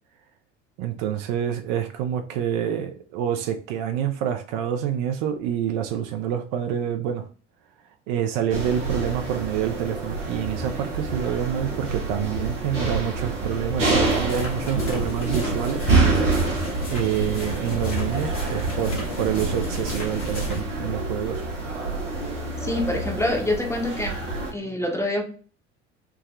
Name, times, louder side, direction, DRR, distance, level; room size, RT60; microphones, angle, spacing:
voice 1, 0.8-7.3 8.1-15.9 16.9-21.4, right 10 dB, 55° right, 6 dB, 0.5 m, -27 dB
sound 1, 8.5-24.5, right 3 dB, 90° right, 0.8 m, -27 dB
sound 2, 13.8-20.6, right 1 dB, 85° left, 1.0 m, -31 dB
voice 2, 22.6-24.2 24.5-25.2, left 1 dB, 5° left, 2 dB, 0.7 m, -26 dB
3.4 x 2.0 x 2.3 m, 0.40 s
figure-of-eight pair, 60°, 36 cm